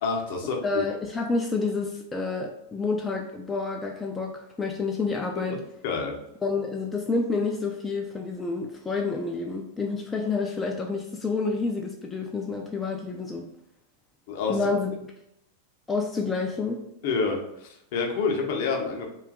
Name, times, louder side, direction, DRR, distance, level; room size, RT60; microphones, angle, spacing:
voice 1, 0.0-0.8 5.5-5.6 5.8-6.1 14.3-14.6 17.0-19.1, left 4 dB, 50° left, 2 dB, 0.6 m, -28 dB
voice 2, 0.6-5.6 6.4-13.5 14.5-14.9 15.9-16.8, left 4 dB, 15° left, 1 dB, 0.3 m, -29 dB
2.5 x 2.3 x 3.5 m, 0.81 s
figure-of-eight pair, 90°, 0 cm